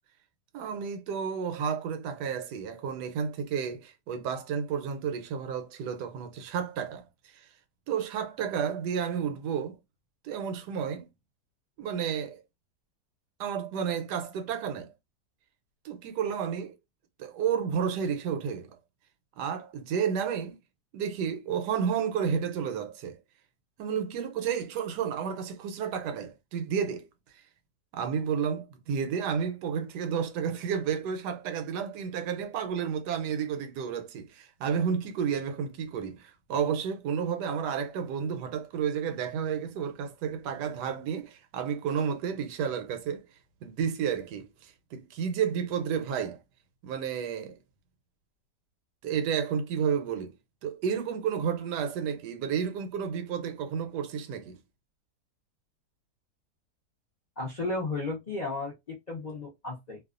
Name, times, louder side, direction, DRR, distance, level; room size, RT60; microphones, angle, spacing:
voice 1, 0.5-7.5 7.9-9.8 10.2-11.1 11.8-12.4 13.4-14.9 15.8-16.7 17.2-18.8 19.4-20.6 20.9-23.2 23.8-27.1 27.9-43.3 43.6-46.4 46.8-47.6 49.0-50.4 50.6-54.6, right 7 dB, 85° right, 1.2 m, -31 dB
voice 2, 57.4-60.0, left 2 dB, 55° left, 0.4 m, -34 dB
2.6 x 2.3 x 2.4 m
omnidirectional pair, 1.7 m